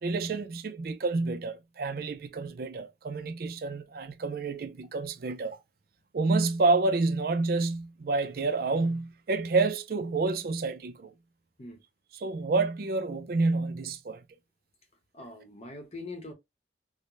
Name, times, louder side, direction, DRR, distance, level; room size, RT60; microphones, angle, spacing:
voice 1, 0.0-5.6 6.1-11.1 12.1-14.2, right 3 dB, 55° right, 0.4 m, -29 dB
voice 2, 15.1-16.3, left 2 dB, 35° left, 0.8 m, -42 dB
4.7 x 2.1 x 2.5 m
head